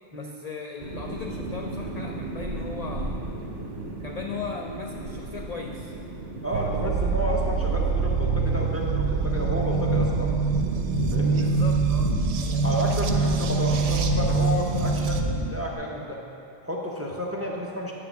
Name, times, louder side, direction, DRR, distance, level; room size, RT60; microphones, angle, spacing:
voice 1, 0.1-3.3 4.0-5.9 6.5-7.1 11.3-12.2, left 4 dB, 70° left, 1 dB, 0.3 m, -38 dB
sound 1, 0.8-12.2, right 2 dB, 60° right, 1.2 m, -36 dB
voice 2, 6.4-10.4 11.0-11.5 12.6-16.2 16.6-17.9, equal, 15° right, -2 dB, 0.5 m, -31 dB
sound 2, 6.5-15.2, right 4 dB, 85° right, 1.0 m, -25 dB
sound 3, 9.5-15.7, equal, 35° left, 1.3 m, -30 dB
9.3 x 3.6 x 6.9 m, 2.6 s
omnidirectional pair, 1.2 m